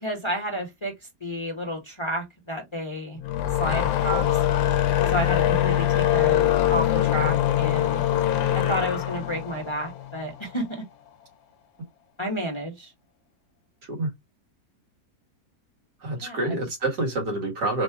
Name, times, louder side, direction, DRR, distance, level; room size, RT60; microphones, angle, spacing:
voice 1, 0.0-0.9 1.2-3.2 3.5-4.3 5.1-8.1 8.5-10.8 12.2-12.9 16.1-16.6, equal, 20° left, 0.9 m, -31 dB
sound 1, 3.2-10.6, left 12 dB, 70° left, 1.1 m, -23 dB
voice 2, 16.0-17.8, right 2 dB, 80° right, 2.4 m, -27 dB
4.1 x 2.2 x 4.6 m
omnidirectional pair, 1.7 m